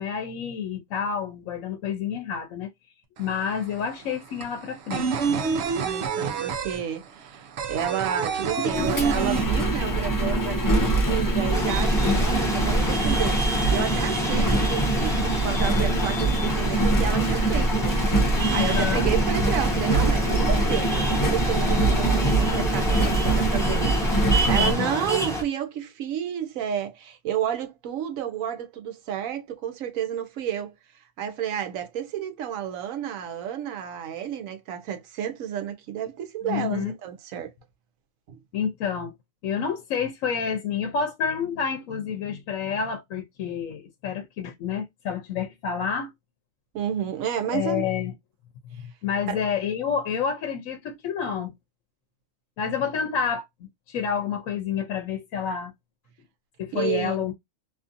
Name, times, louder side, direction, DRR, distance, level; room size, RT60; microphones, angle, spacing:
voice 1, 0.0-2.7 3.2-5.3 8.6-8.9 14.4-14.5 18.6-19.1 24.5-25.1 36.4-36.9 38.5-39.1 39.4-46.1 47.5-48.1 48.7-51.5 52.6-53.5 53.9-55.7 56.6-57.3, left 7 dB, 85° left, 1.0 m, -29 dB
sound 1, 3.2-3.3 3.5-10.1 10.4-10.5 10.8-11.6, right 5 dB, 60° right, 0.8 m, -27 dB
voice 2, 5.7-18.0 18.5-30.7 31.2-37.5 38.3-38.4 46.7-47.8 49.3-49.4 56.7-57.2, right 9 dB, 90° right, 1.1 m, -31 dB
Engine, 8.7-24.7, right 2 dB, 20° left, 0.5 m, -23 dB
sound 2, 11.5-25.4, equal, 5° left, 0.9 m, -29 dB
2.8 x 2.5 x 2.5 m
omnidirectional pair, 1.4 m